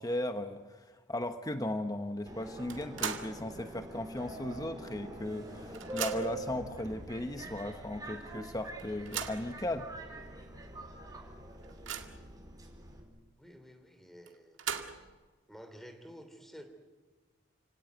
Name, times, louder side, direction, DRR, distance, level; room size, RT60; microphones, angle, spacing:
voice 1, 0.0-9.9, left 1 dB, 20° left, 7 dB, 1.0 m, -37 dB
Subway metro underground, 2.3-13.0, right 2 dB, 20° right, 4.3 m, -45 dB
sound 1, 2.7-3.4 3.8-3.9 5.0-5.1 5.4-6.5 7.2-7.3 7.7-7.8 8.8-9.5 10.2-10.3 10.7-10.8 11.3-12.3 14.3-15.2, right 8 dB, 85° right, 2.0 m, -39 dB
voice 2, 13.4-14.6 15.5-16.6, equal, ahead, 7 dB, 2.9 m, -51 dB
29.5 x 18.0 x 9.2 m, 1.4 s
head